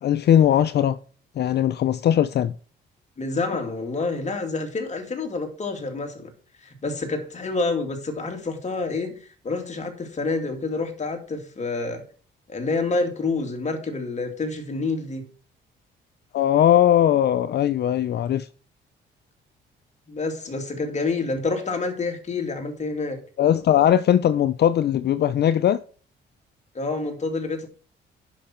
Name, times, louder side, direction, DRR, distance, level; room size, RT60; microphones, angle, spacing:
voice 1, 0.0-1.0 1.4-2.5 16.3-18.5 23.4-25.8, left 10 dB, 55° left, 0.5 m, -19 dB
voice 2, 3.2-6.3 6.6-12.0 12.5-15.2 20.1-23.2 26.7-27.7, left 3 dB, 35° left, 2.5 m, -28 dB
10.0 x 5.8 x 4.4 m
cardioid pair, 90°, 20 cm